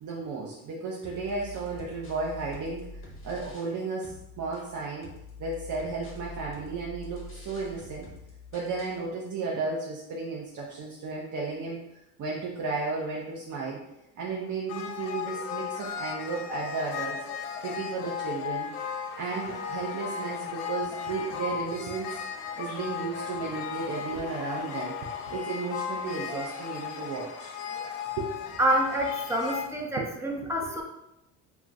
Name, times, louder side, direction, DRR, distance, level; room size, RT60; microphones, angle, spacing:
voice 1, 0.0-5.1 5.4-8.1 8.5-11.8 12.2-13.8 14.2-17.2 17.6-18.7 19.1-22.2 22.6-24.9 25.3-27.6 28.2-28.3 30.0-30.1 30.4-30.7, right 4 dB, 45° right, -3 dB, 0.6 m, -34 dB
sound 1, 1.0-3.8 4.0-9.0, left 3 dB, 30° left, 1.0 m, -45 dB
sound 2, 14.7-29.7, left 7 dB, 65° left, 0.6 m, -36 dB
voice 2, 28.6-30.8, right 1 dB, 5° right, 0 dB, 0.6 m, -27 dB
2.3 x 2.2 x 3.9 m, 0.87 s
supercardioid pair, 75°, 42 cm